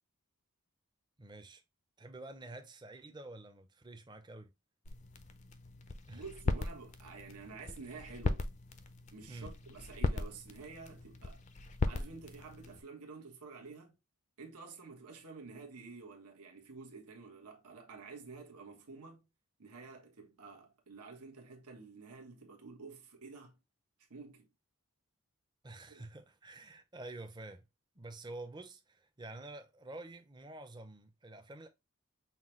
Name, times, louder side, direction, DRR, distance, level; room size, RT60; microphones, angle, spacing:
voice 1, 1.2-1.6 2.0-4.5 6.1-6.2 9.3-9.5 25.6-27.6 27.9-31.7, right 2 dB, 20° right, 0.5 m, -48 dB
sound 1, 4.9-12.8, left 2 dB, 30° left, 0.4 m, -38 dB
voice 2, 6.1-8.5 9.1-11.4 11.9-14.0 14.4-19.3 19.6-23.6 24.1-24.5 25.9-26.0, right 4 dB, 90° right, 1.1 m, -50 dB
5.7 x 2.2 x 3.0 m
head